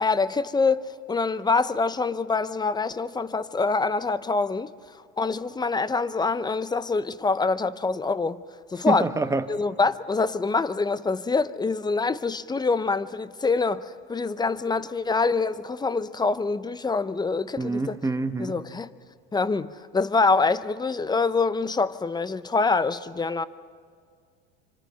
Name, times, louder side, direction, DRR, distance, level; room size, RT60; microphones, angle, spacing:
voice 1, 0.0-4.7 5.2-8.4 8.7-9.1 9.5-18.0 18.4-18.9 19.3-23.5, left 4 dB, 15° left, 0.7 m, -25 dB
voice 2, 8.9-9.4 17.6-18.5, right 3 dB, 10° right, 1.3 m, -26 dB
26.0 x 25.0 x 5.7 m
supercardioid pair, 100°, 29 cm